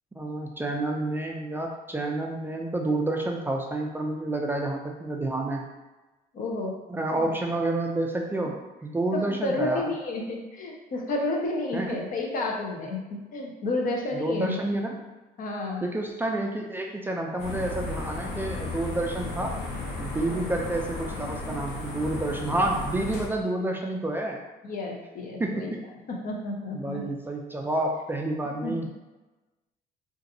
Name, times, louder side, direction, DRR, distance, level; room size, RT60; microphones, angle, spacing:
voice 1, 0.1-5.7 6.9-9.8 11.7-12.0 14.1-15.1 15.8-19.6 20.0-24.4 25.4-25.8 26.7-28.9, right 2 dB, 10° right, 0 dB, 0.3 m, -29 dB
voice 2, 6.3-6.7 7.1-7.3 9.1-14.6 15.4-15.8 20.2-20.5 24.6-25.7 26.1-27.0 28.6-28.9, left 2 dB, 55° left, 0 dB, 0.8 m, -31 dB
sound 1, 17.4-23.3, left 2 dB, 85° left, 0.7 m, -34 dB
3.9 x 2.5 x 2.6 m, 1.1 s
cardioid pair, 110°, 17 cm